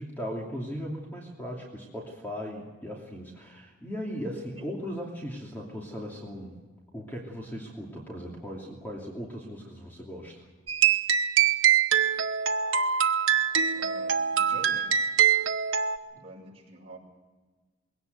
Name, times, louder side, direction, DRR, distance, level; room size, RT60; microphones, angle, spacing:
voice 1, 0.0-6.6 6.9-10.5, equal, 10° left, -2 dB, 2.7 m, -38 dB
sound 1, 10.7-16.0, right 8 dB, 85° right, 1.0 m, -24 dB
voice 2, 13.7-14.9 16.1-17.0, right 2 dB, 30° right, -3 dB, 7.5 m, -46 dB
22.0 x 17.5 x 8.0 m, 1.3 s
head